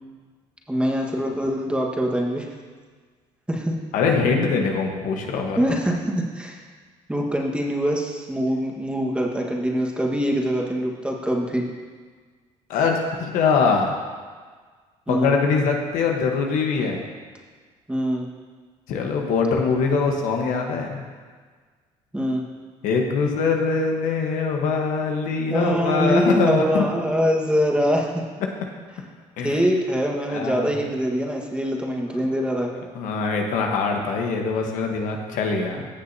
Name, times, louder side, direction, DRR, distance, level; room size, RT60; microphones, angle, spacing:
voice 1, 0.7-2.4 3.5-3.7 5.6-6.6 7.1-11.7 15.1-15.4 17.9-18.3 22.1-22.4 25.5-28.2 29.4-32.7, equal, 10° right, -1 dB, 1.5 m, -23 dB
voice 2, 3.9-5.6 12.7-14.0 15.1-17.0 18.9-21.0 22.8-26.9 29.4-29.6 30.3-30.7 32.2-32.3 32.9-35.9, left 5 dB, 75° left, 2 dB, 1.3 m, -23 dB
15.0 x 6.6 x 2.8 m, 1.5 s
supercardioid pair, 80°, 14 cm